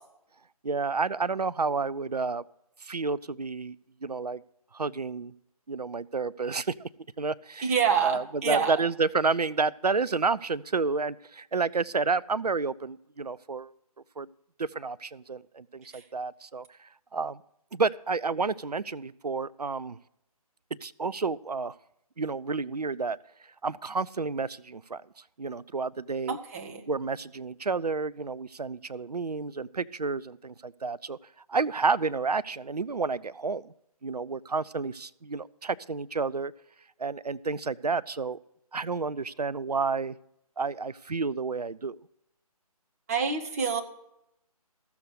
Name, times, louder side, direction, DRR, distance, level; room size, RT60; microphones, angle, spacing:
voice 1, 0.6-2.4 2.8-3.8 4.0-4.4 4.7-5.3 5.7-6.9 7.2-7.7 8.0-13.7 14.2-14.3 14.6-17.4 17.7-20.0 20.8-21.7 22.2-23.2 23.6-25.0 25.4-26.4 26.9-31.2 31.5-33.7 34.0-36.5 37.0-38.4 38.7-40.1 40.6-42.0, right 4 dB, 90° right, 18 dB, 0.4 m, -30 dB
voice 2, 7.6-8.8 26.3-26.8 43.1-43.8, right 6 dB, 25° right, 4 dB, 0.9 m, -27 dB
14.5 x 7.0 x 6.4 m, 0.79 s
figure-of-eight pair, 145°, 20 cm